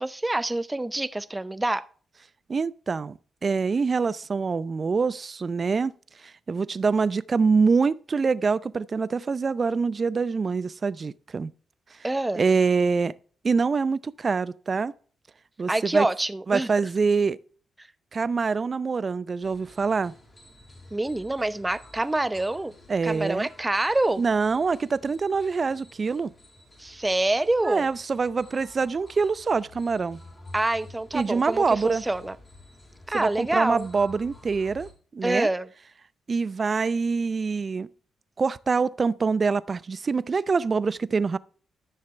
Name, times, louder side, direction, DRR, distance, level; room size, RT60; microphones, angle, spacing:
voice 1, 0.0-1.8 12.0-12.4 15.7-16.7 20.9-22.7 23.0-24.2 26.8-27.9 30.5-32.4 33.1-33.9 35.2-35.7, right 2 dB, 20° right, 0.8 m, -26 dB
voice 2, 2.5-5.9 6.2-11.5 12.3-13.1 13.4-14.9 15.6-16.1 16.5-17.4 18.1-20.1 22.9-23.5 24.2-26.3 27.6-30.2 31.1-32.0 33.1-35.5 36.3-37.9 38.4-41.4, right 4 dB, 45° right, 0.5 m, -25 dB
sound 1, 19.4-34.9, left 2 dB, 30° left, 4.5 m, -51 dB
13.5 x 6.5 x 3.3 m
supercardioid pair, 50°, 0 cm